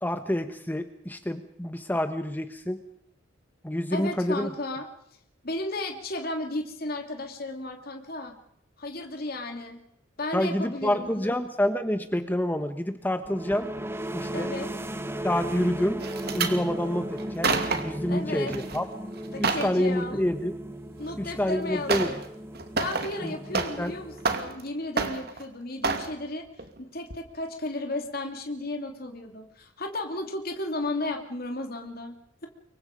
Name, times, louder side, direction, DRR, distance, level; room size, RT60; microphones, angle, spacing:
voice 1, 0.0-2.8 3.6-4.5 10.3-13.7 14.1-14.5 15.2-16.0 16.3-17.5 17.8-18.8 19.4-20.5 21.2-22.1 23.2-23.3 23.8-24.0, left 1 dB, 10° left, 9 dB, 1.1 m, -27 dB
voice 2, 3.9-4.9 5.4-8.4 8.8-9.8 10.2-11.4 14.3-14.7 18.1-18.5 19.3-20.2 21.0-22.2 22.8-26.4 26.8-32.5, left 2 dB, 50° left, 4 dB, 2.7 m, -34 dB
sound 1, 13.2-24.8, right 1 dB, 15° right, 1.5 m, -36 dB
sound 2, 16.0-16.6 17.2-18.0 18.5-18.8 19.1-19.7 21.1-21.2 21.9-22.2 22.5-23.9 24.2-24.7 25.0-25.4 25.8-26.1 26.6-26.8 27.1-27.2, right 4 dB, 55° right, 2.6 m, -28 dB
25.5 x 23.5 x 5.2 m, 0.74 s
head